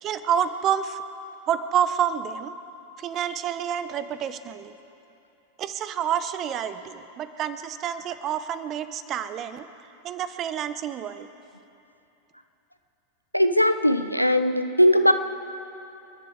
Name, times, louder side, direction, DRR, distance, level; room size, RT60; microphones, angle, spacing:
voice 1, 0.0-1.0 1.5-2.5 3.0-4.7 5.6-9.7 10.0-11.3, right 9 dB, 30° right, 12 dB, 0.8 m, -28 dB
voice 2, 13.3-15.1, equal, 90° left, 9 dB, 0.7 m, -19 dB
29.5 x 10.5 x 4.6 m, 2.9 s
figure-of-eight pair, 90°, 0 cm